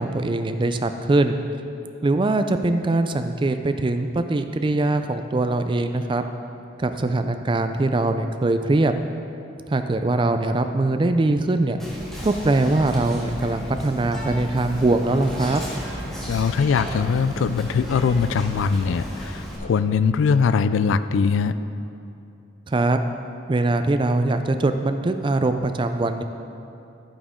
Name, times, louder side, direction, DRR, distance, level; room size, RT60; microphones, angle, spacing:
voice 1, 0.0-1.4 2.0-6.3 6.8-9.0 9.7-11.8 12.2-15.6 22.7-23.0 23.5-26.2, right 2 dB, 25° right, 8 dB, 0.4 m, -22 dB
Whispering, 11.8-19.6, equal, ahead, 1.7 m, -34 dB
voice 2, 16.3-21.6, left 5 dB, 75° left, 13 dB, 0.3 m, -21 dB
11.0 x 8.7 x 3.7 m, 2.7 s
head